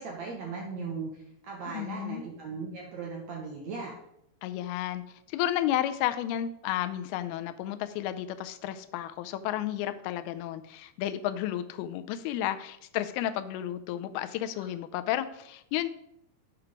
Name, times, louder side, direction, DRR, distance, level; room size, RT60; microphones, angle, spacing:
voice 1, 0.0-3.9 14.5-14.6, right 4 dB, 70° right, -1 dB, 1.8 m, -38 dB
voice 2, 1.7-2.2 4.4-5.0 5.3-15.9, left 12 dB, 85° left, 11 dB, 2.5 m, -32 dB
8.6 x 4.5 x 5.0 m, 0.78 s
omnidirectional pair, 4.4 m